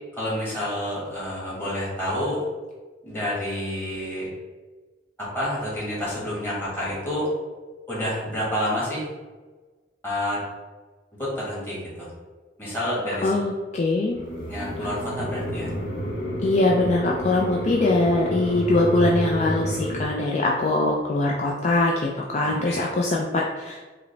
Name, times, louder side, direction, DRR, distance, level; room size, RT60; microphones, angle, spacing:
voice 1, 0.1-2.4 3.0-4.3 5.2-7.3 7.9-9.1 10.0-10.4 11.2-12.1 12.6-13.3 14.5-15.7 22.4-22.9, left 1 dB, 15° left, -8 dB, 1.5 m, -29 dB
voice 2, 13.2-14.2 16.4-23.9, left 2 dB, 40° left, -2 dB, 0.3 m, -22 dB
sound 1, 14.1-20.0, equal, 80° left, 0.8 m, -30 dB
4.8 x 2.0 x 3.2 m, 1.3 s
head